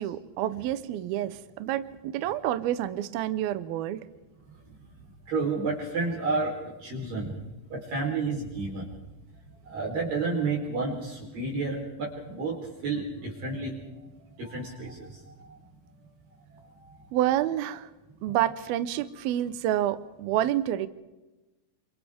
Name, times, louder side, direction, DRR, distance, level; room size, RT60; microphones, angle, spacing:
voice 1, 0.0-4.0 17.1-17.9 18.2-20.9, right 12 dB, 90° right, 12 dB, 2.1 m, -28 dB
voice 2, 5.3-7.3 7.7-8.9 9.7-12.6 12.8-13.7 14.4-15.1, right 3 dB, 45° right, -3 dB, 5.4 m, -30 dB
29.0 x 27.0 x 3.6 m, 1.1 s
omnidirectional pair, 5.8 m